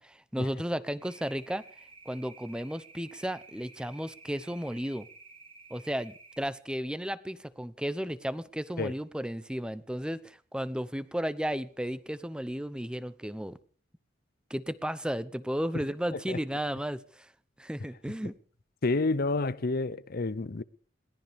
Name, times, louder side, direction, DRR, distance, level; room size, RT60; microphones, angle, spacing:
voice 1, 0.0-1.6 2.1-5.1 5.7-13.6 14.5-17.3 17.6-18.3, equal, 5° right, 0.8 m, -34 dB
sound 1, 1.0-6.4, right 3 dB, 30° right, 6.8 m, -53 dB
voice 2, 18.8-20.6, left 3 dB, 50° left, 0.7 m, -29 dB
21.5 x 17.5 x 3.6 m
head